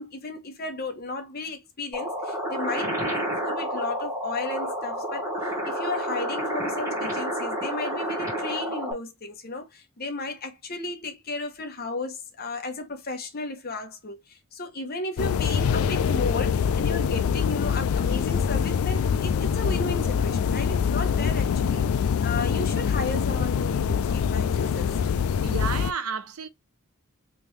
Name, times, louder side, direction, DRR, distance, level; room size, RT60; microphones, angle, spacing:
voice 1, 0.0-24.9, left 2 dB, 45° left, 1.0 m, -34 dB
sound 1, 1.9-8.9, equal, 15° right, 1.6 m, -30 dB
sound 2, 15.2-25.9, left 7 dB, 75° left, 0.3 m, -24 dB
voice 2, 25.4-26.5, right 5 dB, 80° right, 0.6 m, -31 dB
3.4 x 3.0 x 3.2 m
head